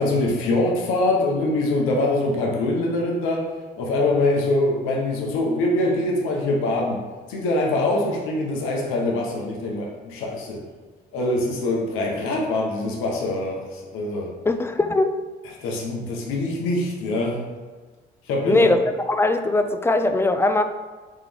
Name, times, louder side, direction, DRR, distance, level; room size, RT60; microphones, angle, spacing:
voice 1, 0.0-7.0 7.3-10.6 11.1-14.3 15.5-17.4 18.3-18.7, left 2 dB, 85° left, -1 dB, 0.8 m, -24 dB
voice 2, 14.5-15.2 18.5-18.8 19.1-20.6, left 2 dB, 10° left, 8 dB, 0.3 m, -20 dB
3.7 x 3.1 x 3.4 m, 1.3 s
supercardioid pair, 80°, 21 cm